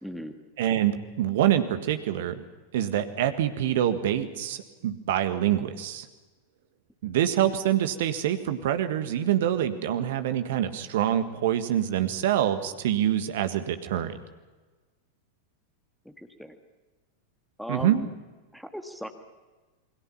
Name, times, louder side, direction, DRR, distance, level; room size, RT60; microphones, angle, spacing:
voice 1, 0.0-0.3 16.4-16.5 17.6-18.1 18.5-19.1, equal, ahead, 6 dB, 1.6 m, -36 dB
voice 2, 0.6-0.9 1.2-2.4 2.7-6.1 7.0-14.1 17.7-18.0, right 11 dB, 55° right, 9 dB, 1.7 m, -25 dB
28.5 x 21.5 x 5.8 m, 1.2 s
figure-of-eight pair, 90°, 0 cm